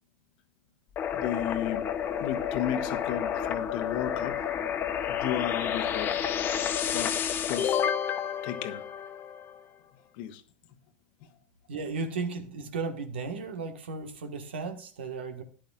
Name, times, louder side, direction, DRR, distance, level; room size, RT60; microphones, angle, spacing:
sound 1, 1.0-9.6, left 8 dB, 35° left, 1.2 m, -30 dB
voice 1, 1.1-1.9 2.2-4.4 5.1-6.3 6.9-7.1 7.4-7.8 8.4-8.8 10.1-10.4, left 11 dB, 60° left, 1.2 m, -33 dB
voice 2, 11.7-15.4, right 4 dB, 80° right, 1.6 m, -35 dB
13.5 x 10.5 x 2.5 m
hypercardioid pair, 100°, 6 cm